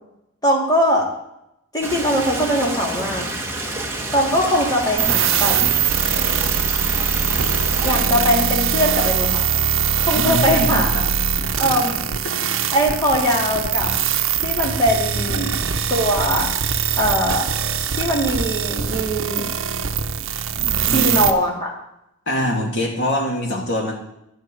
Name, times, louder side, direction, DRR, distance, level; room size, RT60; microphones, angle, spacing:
voice 1, 0.4-1.0 1.7-3.3 4.1-5.6 7.8-9.4 10.1-10.9 11.6-12.0 12.7-13.9 14.4-15.5 15.9-16.5 17.0-17.4 18.0-19.5 20.9-21.7, equal, 20° left, -3 dB, 3.1 m, -20 dB
Stream, 1.8-8.0, right 2 dB, 10° right, 1.5 m, -28 dB
sound 1, 5.0-21.3, right 7 dB, 70° right, 0.8 m, -22 dB
voice 2, 10.1-11.1 11.6-11.7 15.3-15.6 20.5-21.2 22.3-24.0, left 1 dB, 55° left, -1 dB, 3.0 m, -24 dB
11.5 x 6.5 x 9.4 m, 0.83 s
head